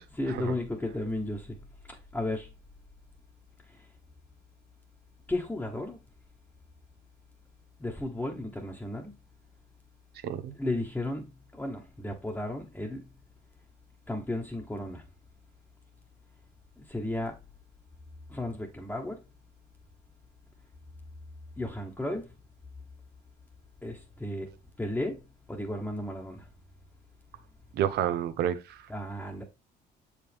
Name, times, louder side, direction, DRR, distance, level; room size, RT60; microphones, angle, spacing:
voice 1, 0.1-1.6 2.1-2.5 5.3-6.0 7.8-9.1 10.5-11.3 11.5-13.0 14.1-15.0 16.9-17.3 18.3-19.2 21.6-22.3 23.8-24.5 24.8-25.2 25.5-26.4 28.9-29.4, left 1 dB, 10° left, 1.1 m, -33 dB
voice 2, 10.2-10.5 27.7-28.8, right 10 dB, 75° right, 0.8 m, -29 dB
7.0 x 5.0 x 3.4 m
cardioid pair, 110°, 17 cm